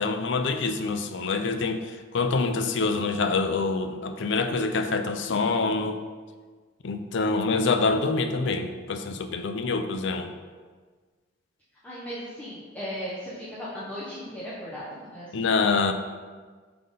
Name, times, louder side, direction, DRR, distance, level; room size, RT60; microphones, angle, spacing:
voice 1, 0.0-6.0 6.8-10.3 15.3-15.9, left 4 dB, 60° left, 8 dB, 0.5 m, -26 dB
voice 2, 11.8-15.5, equal, 5° left, -10 dB, 1.0 m, -37 dB
5.8 x 3.9 x 5.2 m, 1.5 s
head